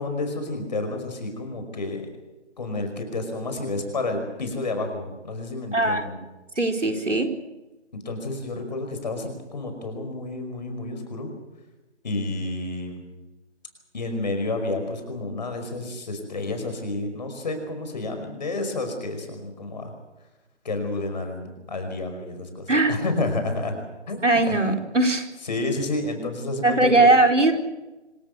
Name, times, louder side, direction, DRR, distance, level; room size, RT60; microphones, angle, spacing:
voice 1, 0.0-2.0 2.6-6.1 7.9-11.3 12.0-13.0 13.9-19.9 20.6-21.4 21.7-23.8 24.1-24.6 25.5-27.1, left 2 dB, 40° left, 6 dB, 5.3 m, -30 dB
voice 2, 5.7-6.1 6.6-7.3 22.7-23.0 24.2-25.3 26.6-27.5, right 2 dB, 90° right, 4 dB, 4.3 m, -19 dB
26.0 x 17.0 x 8.2 m, 1.1 s
figure-of-eight pair, 160°, 35 cm